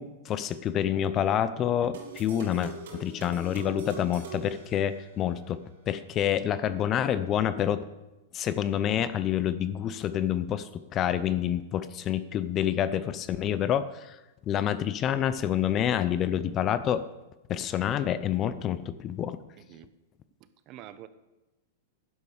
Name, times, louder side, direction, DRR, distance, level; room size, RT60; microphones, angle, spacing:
voice 1, 0.0-7.8 8.3-14.2 14.5-17.1 17.5-19.4, left 10 dB, 30° left, 14 dB, 0.6 m, -28 dB
sound 1, 1.9-5.4, right 4 dB, 75° right, 3.6 m, -43 dB
voice 2, 19.6-19.9 20.4-21.1, right 11 dB, 40° right, 13 dB, 0.9 m, -47 dB
11.0 x 11.0 x 5.0 m, 1.0 s
hypercardioid pair, 130°, 0 cm